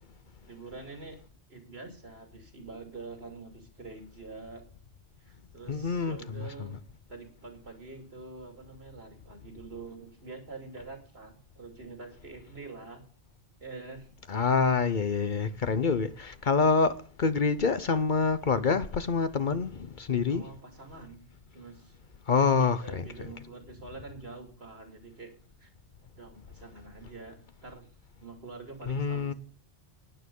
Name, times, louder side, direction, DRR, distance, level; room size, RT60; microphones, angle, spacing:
voice 1, 0.5-1.2 1.5-4.7 5.2-6.7 7.1-13.0 13.6-14.1 20.3-21.2 21.5-21.9 22.5-25.3 25.6-25.7 26.1-27.9 28.2-29.3, right 3 dB, 65° right, 3.0 m, -46 dB
voice 2, 5.7-6.7 14.3-20.5 22.3-23.1 28.9-29.3, left 5 dB, 50° left, 0.9 m, -26 dB
12.5 x 9.9 x 5.4 m
omnidirectional pair, 1.1 m